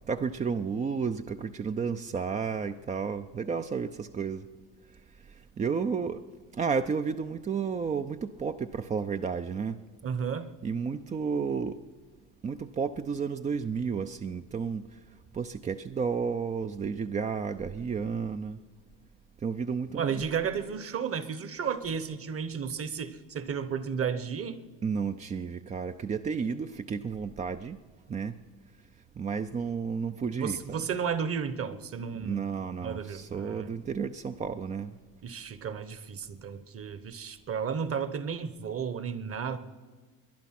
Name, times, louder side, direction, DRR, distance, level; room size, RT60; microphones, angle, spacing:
voice 1, 0.1-4.5 5.6-6.2 6.6-9.8 10.6-11.8 12.4-14.9 15.3-18.6 19.4-20.2 24.8-27.8 28.1-28.4 29.2-30.8 32.2-35.0, right 5 dB, 20° right, 0.4 m, -32 dB
voice 2, 10.0-10.5 19.9-24.6 30.3-32.4 32.8-33.7 35.2-39.6, right 7 dB, 35° right, 1.1 m, -33 dB
20.5 x 10.5 x 5.9 m
supercardioid pair, 95°, 40 cm